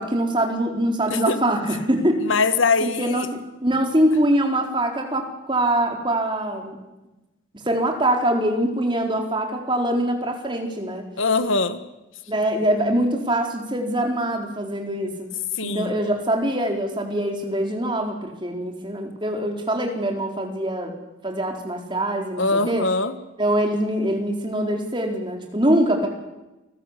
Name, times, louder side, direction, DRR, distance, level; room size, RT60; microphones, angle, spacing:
voice 1, 0.0-2.2 2.8-6.8 7.6-11.0 12.3-15.3 15.6-20.9 21.2-22.9 23.4-26.1, right 1 dB, 25° right, 2 dB, 4.4 m, -23 dB
voice 2, 2.3-3.3 11.2-11.8 15.6-15.9 22.4-23.1, left 3 dB, 75° left, 11 dB, 1.6 m, -22 dB
29.5 x 19.5 x 8.4 m, 1.0 s
head